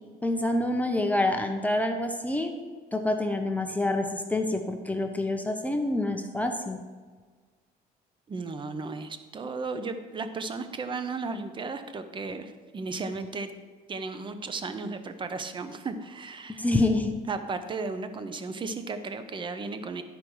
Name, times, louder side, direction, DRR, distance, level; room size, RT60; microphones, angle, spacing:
voice 1, 0.2-2.5 2.9-6.8 16.5-17.2, left 2 dB, 10° left, 4 dB, 0.7 m, -27 dB
voice 2, 8.3-13.5 13.9-16.7 17.3-20.0, right 4 dB, 30° right, 9 dB, 0.7 m, -35 dB
11.5 x 5.1 x 4.6 m, 1.5 s
cardioid pair, 110°, 17 cm